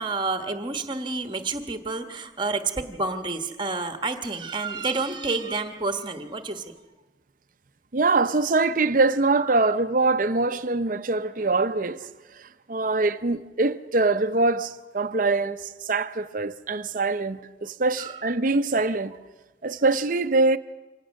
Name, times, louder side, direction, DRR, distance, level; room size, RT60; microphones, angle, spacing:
voice 1, 0.0-6.7 9.5-9.7 18.0-18.1, right 3 dB, 25° right, 1.2 m, -29 dB
voice 2, 7.9-19.2 19.6-20.6, right 3 dB, 45° right, 0.7 m, -24 dB
25.0 x 18.5 x 6.4 m
head